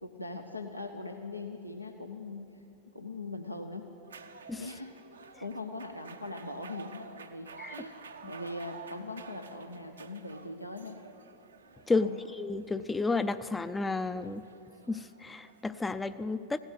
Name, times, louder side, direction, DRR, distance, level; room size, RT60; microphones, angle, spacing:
voice 1, 0.0-2.5 2.9-3.9 4.6-5.0 5.4-11.0 11.9-12.2, left 2 dB, 90° left, 4 dB, 0.8 m, -41 dB
sound 1, 4.0-16.0, right 5 dB, 75° right, 0.7 m, -51 dB
voice 2, 11.9-14.4 14.9-16.6, left 3 dB, 10° left, 13 dB, 0.4 m, -31 dB
16.5 x 8.9 x 9.8 m, 2.8 s
figure-of-eight pair, 90°, 0 cm